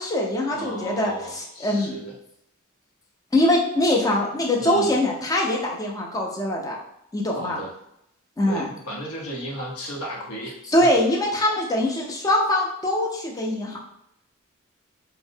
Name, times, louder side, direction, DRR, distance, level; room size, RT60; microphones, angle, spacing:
voice 1, 0.0-2.0 3.3-6.8 7.1-7.6 8.4-8.7 10.7-13.8, left 1 dB, 15° left, -2 dB, 0.4 m, -23 dB
voice 2, 0.5-2.1 4.6-4.9 7.3-7.7 8.5-10.9, right 1 dB, 90° left, -1 dB, 0.7 m, -34 dB
2.5 x 2.0 x 2.6 m, 0.79 s
head